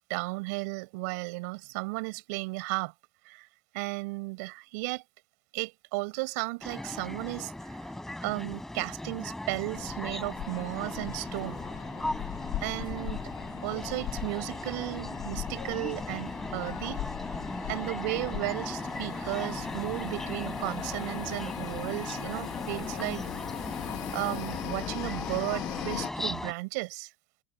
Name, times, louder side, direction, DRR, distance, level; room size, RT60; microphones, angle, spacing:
voice 1, 0.1-2.9 3.2-3.5 3.7-5.0 5.5-7.9 8.2-11.6 12.6-13.3 13.6-17.0 17.7-23.3 24.1-27.1, right 26 dB, 75° right, 6.2 m, -34 dB
sound 1, 6.6-26.5, left 1 dB, 5° left, 6.7 m, -38 dB
sound 2, 9.7-26.1, left 15 dB, 45° left, 1.7 m, -39 dB
supercardioid pair, 155°, 9 cm